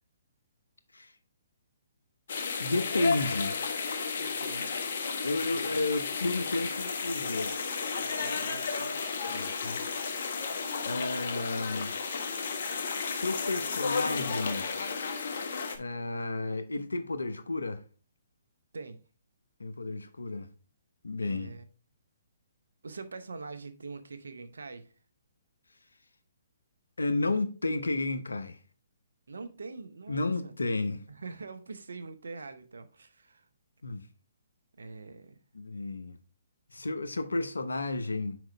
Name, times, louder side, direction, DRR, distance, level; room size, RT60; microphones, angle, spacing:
sound 1, 2.3-15.8, left 5 dB, 60° left, 1.1 m, -33 dB
voice 1, 2.6-3.6 5.2-7.6 9.3-9.8 10.8-11.9 13.1-14.7 15.8-17.8 19.6-20.5 21.0-21.5 27.0-28.6 30.1-31.0 33.8-34.0 35.5-36.2 36.7-38.4, left 2 dB, 85° left, 0.9 m, -32 dB
voice 2, 4.2-4.8 5.5-5.8 8.0-9.0 18.7-19.0 21.2-21.6 22.8-24.9 29.3-30.5 31.1-33.5 34.8-35.4, right 3 dB, 75° right, 0.9 m, -44 dB
6.1 x 5.0 x 3.4 m
figure-of-eight pair, 135°, 0 cm